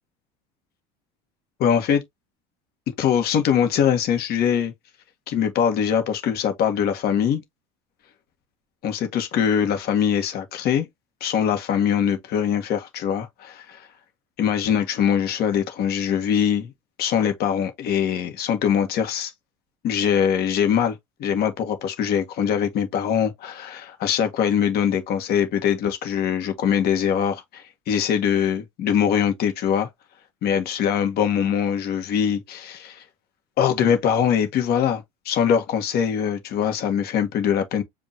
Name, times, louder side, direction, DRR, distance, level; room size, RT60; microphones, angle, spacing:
voice 1, 1.6-2.0 3.0-4.7 5.3-7.4 8.8-10.9 11.2-13.9 14.4-16.7 17.0-19.3 19.8-29.9 30.4-33.0 33.6-37.8, left 8 dB, 55° left, 1.7 m, -22 dB
5.3 x 2.9 x 2.9 m
supercardioid pair, 100°, 19 cm